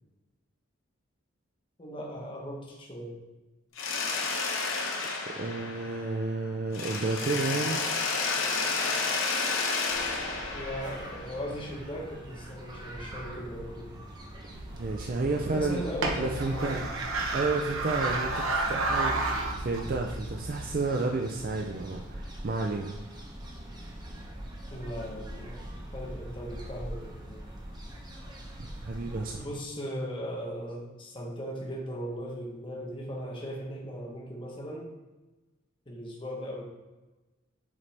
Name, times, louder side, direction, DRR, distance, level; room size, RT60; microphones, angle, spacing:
voice 1, 1.8-3.2 10.5-14.0 15.3-16.9 24.7-25.6 25.9-27.5 29.4-34.9 35.9-36.6, equal, 25° left, -1 dB, 1.0 m, -38 dB
Mechanisms, 3.8-6.4 6.7-11.6, left 4 dB, 75° left, 1.0 m, -31 dB
voice 2, 5.4-7.8 14.7-15.9 16.2-16.9 17.3-23.0 28.6-29.5, right 3 dB, 45° right, 1 dB, 0.4 m, -31 dB
sound 1, 9.9-29.4, right 1 dB, 20° right, 0.8 m, -43 dB
sound 2, 14.5-20.8, right 2 dB, 85° right, 0.9 m, -32 dB
7.2 x 4.1 x 3.3 m, 1.1 s
head